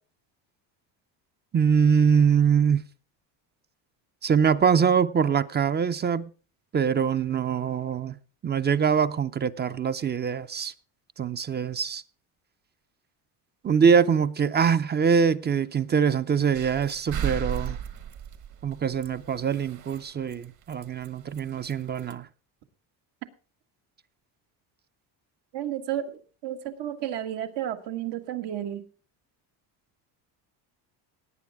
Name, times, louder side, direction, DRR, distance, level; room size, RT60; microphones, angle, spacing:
voice 1, 1.5-2.8 4.2-6.3 6.7-8.2 8.4-10.7 11.2-12.0 13.6-17.8 18.6-22.3, right 6 dB, 25° right, 0.6 m, -23 dB
sound 1, 16.5-20.1 20.3-20.5 20.7-21.7 22.0-22.1, right 9 dB, 45° right, 1.3 m, -35 dB
voice 2, 25.5-28.8, right 11 dB, 75° right, 1.8 m, -32 dB
18.0 x 9.2 x 3.6 m
cardioid pair, 125°, 42 cm